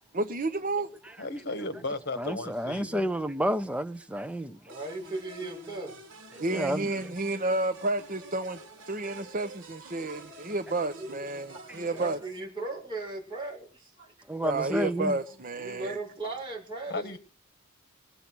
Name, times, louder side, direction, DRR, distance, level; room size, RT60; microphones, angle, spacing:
voice 1, 0.1-0.9 6.4-8.6 8.9-12.2 14.4-16.0, right 2 dB, 40° right, 0.9 m, -31 dB
voice 2, 1.2-3.1 16.9-17.2, left 2 dB, 50° left, 1.5 m, -35 dB
voice 3, 2.2-4.6 6.5-6.9 14.3-15.2, equal, 5° right, 0.6 m, -30 dB
voice 4, 4.6-6.1 9.0-9.1 9.8-10.2 10.9-14.1 15.6-17.2, right 2 dB, 20° right, 7.0 m, -38 dB
sound 1, 4.7-12.2, right 2 dB, 55° right, 4.6 m, -49 dB
19.5 x 8.2 x 6.2 m
head